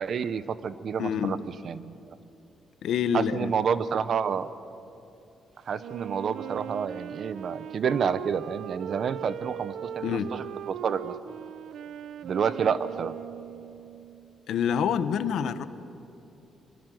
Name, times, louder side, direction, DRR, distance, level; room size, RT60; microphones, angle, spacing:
voice 1, 0.0-1.4 1.6-2.0 3.1-4.5 5.7-9.9 10.3-11.1 12.2-13.1, right 7 dB, 50° right, 14 dB, 0.8 m, -29 dB
voice 2, 1.0-1.4 2.8-3.5 10.0-10.3 14.5-15.6, left 7 dB, 75° left, 12 dB, 1.1 m, -27 dB
Wind instrument woodwind instrument, 5.8-14.3, right 10 dB, 75° right, 0.6 m, -39 dB
24.0 x 22.5 x 7.7 m, 2.8 s
cardioid pair, 160°, 0 cm